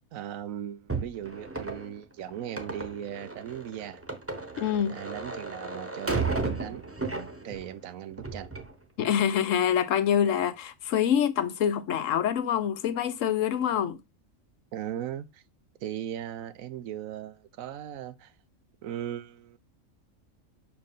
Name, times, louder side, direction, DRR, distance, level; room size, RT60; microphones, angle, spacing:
voice 1, 0.1-4.0 4.9-6.8 7.4-8.5 14.7-15.4 15.8-18.3 18.8-19.6, right 10 dB, 90° right, 1.1 m, -38 dB
sound 1, 0.9-7.7 8.1-8.7, right 3 dB, 10° right, 0.9 m, -34 dB
voice 2, 4.6-5.0 9.0-14.0, left 9 dB, 75° left, 1.1 m, -26 dB
6.3 x 4.7 x 3.7 m
omnidirectional pair, 1.4 m